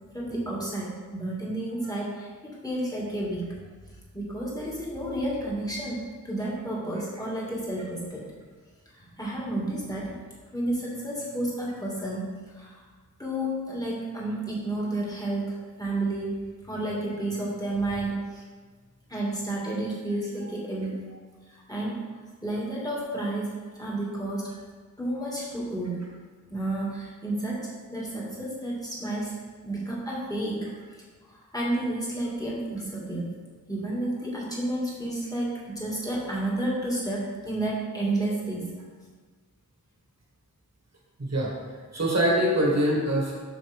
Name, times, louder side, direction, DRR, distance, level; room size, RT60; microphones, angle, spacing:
voice 1, 0.1-3.5 4.1-8.2 9.0-10.1 10.5-12.3 12.5-12.8 13.2-16.3 16.7-18.4 19.1-21.0 21.7-22.0 22.4-24.5 25.0-26.0 26.5-29.3 29.6-30.7 31.5-33.3 33.7-38.7, right 1 dB, 10° left, -5 dB, 2.1 m, -31 dB
voice 2, 41.2-41.5 41.9-43.3, right 1 dB, 55° right, -4 dB, 1.7 m, -23 dB
8.0 x 5.8 x 3.5 m, 1.5 s
wide cardioid pair, 55°, 31 cm